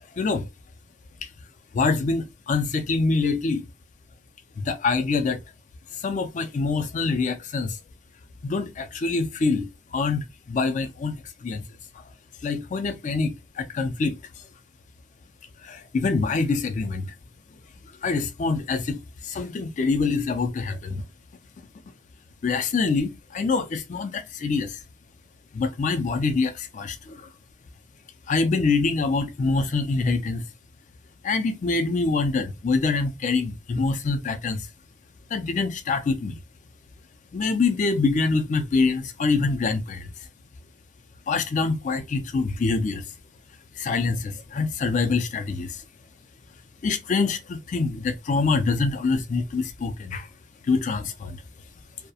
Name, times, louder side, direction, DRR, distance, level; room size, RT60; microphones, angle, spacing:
voice 1, 0.2-0.5 1.7-3.6 4.6-5.4 5.9-7.8 8.4-11.2 11.4-11.6 12.4-14.2 15.6-17.1 18.0-21.0 22.4-24.8 25.5-27.3 28.3-30.4 31.2-34.7 35.3-36.4 37.3-40.1 41.3-43.0 43.8-45.8 46.8-50.3 50.6-51.4, left 4 dB, 40° left, 0.3 m, -25 dB
2.3 x 2.0 x 2.7 m
head